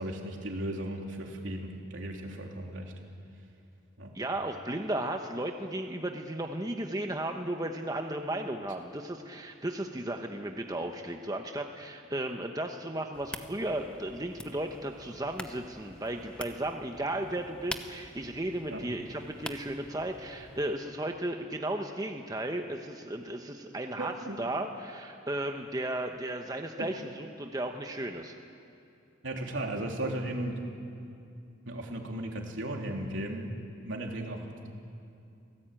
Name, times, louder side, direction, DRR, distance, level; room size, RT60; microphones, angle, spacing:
voice 1, 0.0-2.9 4.0-4.1 18.7-18.8 24.0-24.4 26.8-26.9 29.2-30.6 31.6-33.5 33.8-34.5, right 1 dB, 75° right, 1 dB, 3.3 m, -36 dB
voice 2, 4.1-28.3, right 1 dB, 20° right, 4 dB, 1.0 m, -35 dB
sound 1, 13.1-20.7, left 1 dB, 5° left, 1.0 m, -45 dB
27.5 x 18.0 x 9.1 m, 2.6 s
head